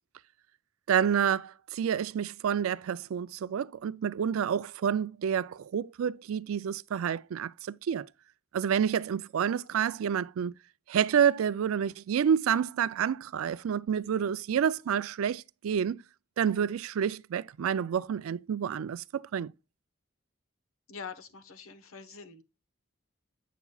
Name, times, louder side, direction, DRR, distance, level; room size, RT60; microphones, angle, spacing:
voice 1, 0.9-8.1 8.5-10.5 10.9-16.0 16.4-19.5, right 8 dB, 80° right, 0.3 m, -29 dB
voice 2, 20.9-22.4, left 5 dB, 80° left, 1.0 m, -44 dB
8.3 x 6.8 x 2.3 m
head